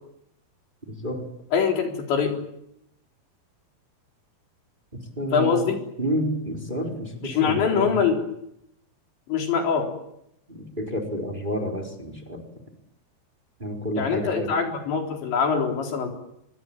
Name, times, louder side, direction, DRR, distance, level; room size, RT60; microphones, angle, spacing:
voice 1, 0.9-1.3 4.9-5.7 6.0-8.0 10.5-12.4 13.6-14.5, equal, 10° right, 2 dB, 4.0 m, -30 dB
voice 2, 1.5-2.4 5.3-5.8 7.2-8.2 9.3-9.9 14.0-16.1, left 6 dB, 90° left, 2 dB, 6.3 m, -23 dB
25.5 x 22.5 x 9.0 m, 0.79 s
omnidirectional pair, 5.0 m